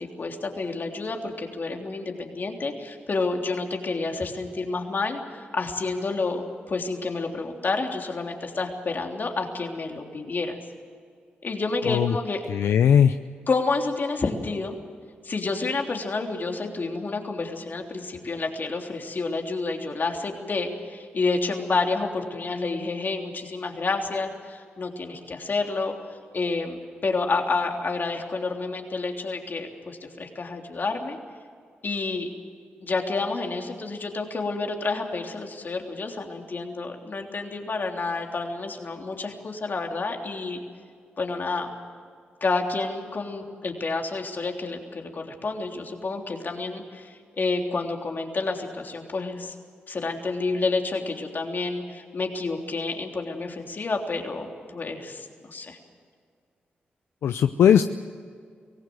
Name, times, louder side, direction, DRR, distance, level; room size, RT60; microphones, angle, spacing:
voice 1, 0.0-10.6 11.4-12.4 13.5-14.8 15.2-25.9 26.3-31.2 31.8-32.3 32.8-40.6 41.2-41.7 42.4-49.5 49.9-55.8, left 3 dB, 50° left, 2 dB, 3.3 m, -29 dB
voice 2, 12.5-13.2 57.2-57.9, left 8 dB, 80° left, 10 dB, 0.6 m, -18 dB
24.0 x 17.5 x 7.8 m, 2.1 s
supercardioid pair, 50°, 4 cm